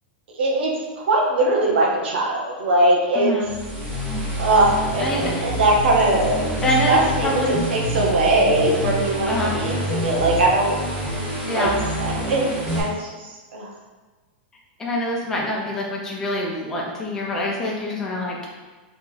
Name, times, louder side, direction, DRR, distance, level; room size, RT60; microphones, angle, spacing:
voice 1, 0.3-0.7 1.1-3.4 4.4-6.5 6.9-10.8 11.5-11.7 12.0-13.7, right 2 dB, 75° right, -2 dB, 0.8 m, -21 dB
voice 2, 3.1-3.5 5.0-5.4 6.6-7.6 9.3-9.5 11.5-11.8 14.8-18.4, left 1 dB, 10° left, -3 dB, 0.5 m, -25 dB
sound 1, 3.4-12.8, equal, 30° right, 1.4 m, -27 dB
2.9 x 2.5 x 3.8 m, 1.3 s
supercardioid pair, 175°, 6 cm